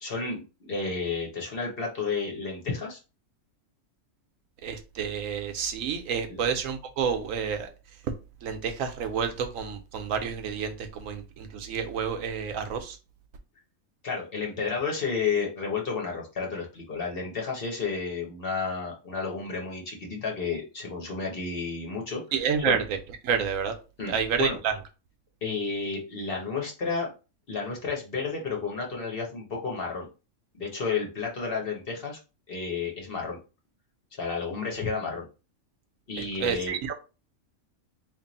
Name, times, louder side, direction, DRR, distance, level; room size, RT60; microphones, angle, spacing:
voice 1, 0.0-3.0 6.3-6.4 14.0-22.2 22.6-22.8 24.0-24.6 25.4-27.1 27.5-30.1 30.6-32.2 32.5-33.4 34.1-35.3 36.1-36.8, left 4 dB, 45° left, 0 dB, 1.0 m, -31 dB
voice 2, 4.6-7.7 8.4-13.0 22.3-23.0 23.2-23.7 24.1-24.7 36.2-36.9, right 7 dB, 75° right, 7 dB, 1.0 m, -29 dB
3.0 x 2.6 x 4.0 m, 0.31 s
omnidirectional pair, 1.5 m